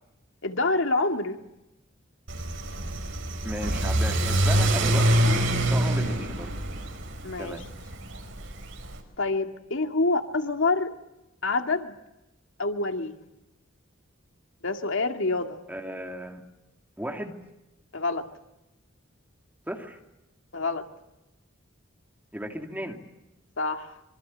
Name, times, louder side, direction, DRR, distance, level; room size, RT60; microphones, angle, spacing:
voice 1, 0.4-1.4 7.2-7.6 9.2-10.9 11.4-12.0 12.6-13.1 14.6-15.6 17.9-18.3 20.5-20.8 23.6-23.9, left 3 dB, 70° left, 6 dB, 2.1 m, -26 dB
Car / Accelerating revving vroom, 2.3-9.0, right 1 dB, 70° right, 5.2 m, -26 dB
voice 2, 3.4-6.5 7.4-7.6 15.7-16.4 17.0-17.3 19.7-20.0 22.3-23.0, equal, 10° right, 3 dB, 2.9 m, -35 dB
26.0 x 24.5 x 8.7 m, 0.94 s
head